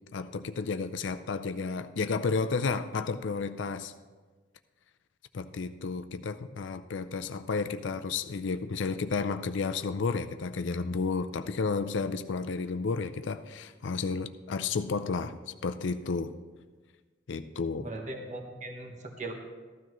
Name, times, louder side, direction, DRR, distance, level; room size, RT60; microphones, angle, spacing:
voice 1, 0.1-3.9 5.3-16.3 17.3-17.9, left 4 dB, 70° left, 10 dB, 0.5 m, -32 dB
voice 2, 17.8-19.3, right 2 dB, 40° right, 2 dB, 1.2 m, -39 dB
14.5 x 12.5 x 3.1 m, 1.4 s
head